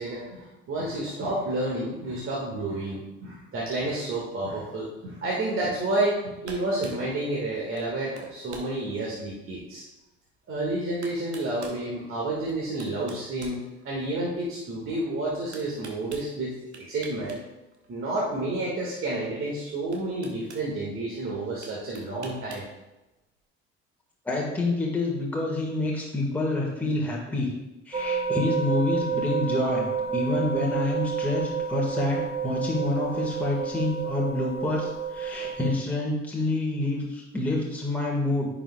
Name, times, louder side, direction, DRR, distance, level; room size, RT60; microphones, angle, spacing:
voice 1, 0.0-9.8 10.5-16.5 16.9-17.4 17.9-22.6, right 2 dB, 40° right, -5 dB, 1.9 m, -30 dB
sound 1, 6.0-6.2 6.4-7.0 7.8-8.7 9.3-9.4 10.5-10.6 11.0-11.8 12.5-14.2 15.5-16.3 16.7-17.4 17.7-17.9 19.3-19.4 19.9-20.7 21.6-22.7, right 3 dB, 80° right, 1.0 m, -44 dB
voice 2, 24.3-27.5 27.9-38.5, left 2 dB, 5° left, -3 dB, 1.8 m, -27 dB
sound 2, 27.9-35.8, right 6 dB, 20° right, 0.7 m, -30 dB
14.5 x 5.0 x 2.3 m, 1.0 s
figure-of-eight pair, 55°, 33 cm